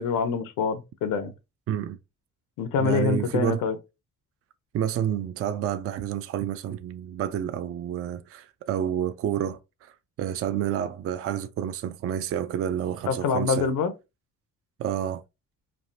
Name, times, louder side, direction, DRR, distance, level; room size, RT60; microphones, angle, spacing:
voice 1, 0.0-1.3 2.6-3.8 13.1-13.9, left 5 dB, 85° left, 0.7 m, -25 dB
voice 2, 1.7-2.0 2.8-3.6 4.7-13.7 14.8-15.2, right 10 dB, 50° right, 0.4 m, -29 dB
3.3 x 2.4 x 2.5 m
cardioid pair, 90°, 30 cm